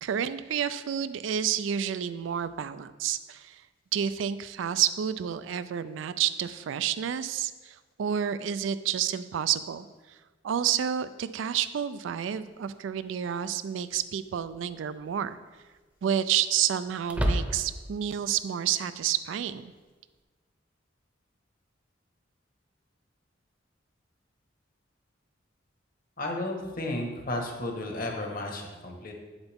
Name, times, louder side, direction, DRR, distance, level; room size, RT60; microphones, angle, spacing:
voice 1, 0.0-3.6 3.9-9.9 10.4-15.4 16.0-19.7, right 9 dB, 90° right, 14 dB, 0.3 m, -29 dB
sound 1, 12.5-12.6 14.4-14.8 15.1-15.2 17.0-17.9, equal, 5° right, 0.7 m, -29 dB
voice 2, 26.2-29.1, left 1 dB, 50° left, 1 dB, 1.4 m, -33 dB
8.1 x 7.9 x 3.5 m, 1.3 s
head